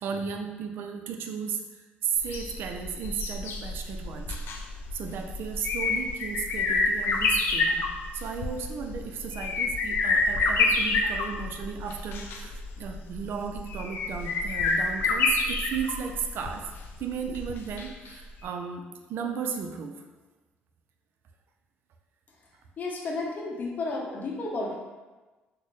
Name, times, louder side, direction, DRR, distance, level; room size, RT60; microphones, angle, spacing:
voice 1, 0.0-4.4 4.9-16.6 17.0-18.8 19.1-20.0, right 6 dB, 65° right, 4 dB, 0.4 m, -35 dB
sound 1, 2.2-18.1 18.4-18.5, left 3 dB, 70° left, 0.4 m, -28 dB
voice 2, 22.8-24.8, left 3 dB, 45° left, -1 dB, 0.8 m, -32 dB
4.3 x 2.1 x 3.1 m, 1.2 s
cardioid pair, 100°, 4 cm